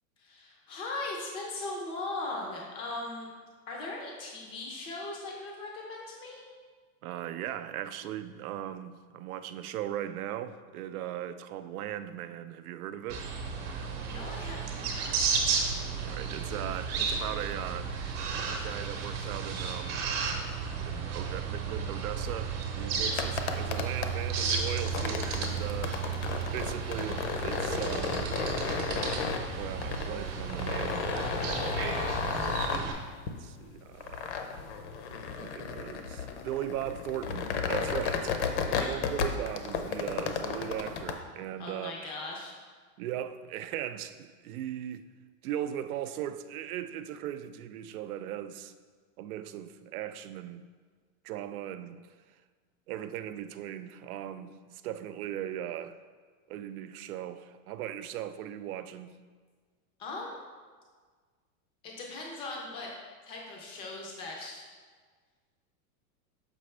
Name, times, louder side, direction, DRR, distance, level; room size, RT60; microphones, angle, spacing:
voice 1, 0.2-3.3 3.7-6.4 14.0-15.6 31.7-32.2 38.7-38.9 41.6-42.5 60.0-60.4 61.8-62.9 63.3-64.6, left 2 dB, 15° left, 0.4 m, -39 dB
voice 2, 7.0-13.3 16.0-18.0 18.5-20.1 20.8-26.0 26.5-28.3 29.6-31.1 31.4-32.1 32.4-33.0 33.4-34.3 35.1-38.3 38.8-41.9 43.0-45.1 45.4-48.7 49.2-50.6 51.2-52.1 52.9-56.0 56.5-59.1, right 11 dB, 85° right, 0.5 m, -38 dB
sound 1, 13.1-32.9, right 5 dB, 45° right, 0.9 m, -33 dB
sound 2, 23.1-41.1, left 5 dB, 55° left, 0.6 m, -33 dB
6.8 x 5.1 x 3.2 m
supercardioid pair, 170°, 42 cm